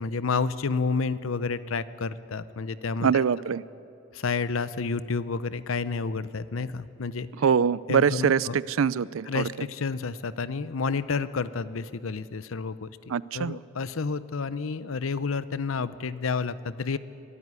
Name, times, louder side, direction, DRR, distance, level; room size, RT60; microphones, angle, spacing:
voice 1, 0.0-3.2 4.1-7.3 7.9-8.6 9.3-13.0 13.3-17.0, left 4 dB, 85° left, 15 dB, 0.7 m, -30 dB
voice 2, 3.0-3.6 7.4-9.5 13.1-13.6, right 7 dB, 85° right, 20 dB, 0.4 m, -24 dB
23.0 x 12.5 x 9.6 m, 2.7 s
head